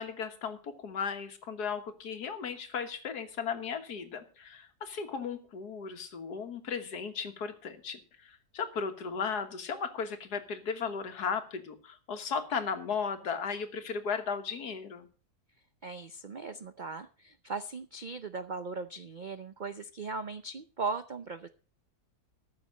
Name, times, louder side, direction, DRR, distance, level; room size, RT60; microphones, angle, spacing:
voice 1, 0.0-15.1, left 6 dB, 80° left, 8 dB, 1.9 m, -36 dB
voice 2, 15.8-21.5, right 4 dB, 70° right, 11 dB, 0.4 m, -38 dB
13.5 x 6.9 x 6.4 m, 0.39 s
omnidirectional pair, 1.7 m